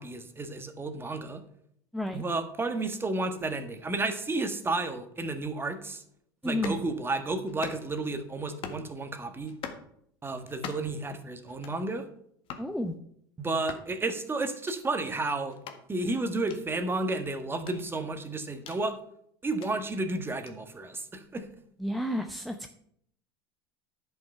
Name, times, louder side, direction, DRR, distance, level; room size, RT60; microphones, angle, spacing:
voice 1, 0.0-1.4 2.1-6.0 6.4-9.6 10.2-12.1 13.4-15.5 15.9-19.0 19.4-21.4, right 2 dB, 20° right, 8 dB, 1.6 m, -32 dB
voice 2, 6.4-6.8 12.6-12.9 21.8-22.7, left 1 dB, ahead, 6 dB, 0.8 m, -31 dB
sound 1, 6.5-6.8 7.5-8.0 8.5-8.9 9.4-9.9 10.5-11.0 11.5-11.8 12.4-12.7 13.5-13.9 14.5-14.8 15.5-15.8 16.4-16.6 17.5-18.8 19.4-19.7 20.4-20.6, left 7 dB, 50° left, 1.7 m, -42 dB
11.0 x 6.4 x 5.6 m, 0.69 s
hypercardioid pair, 80°, 12 cm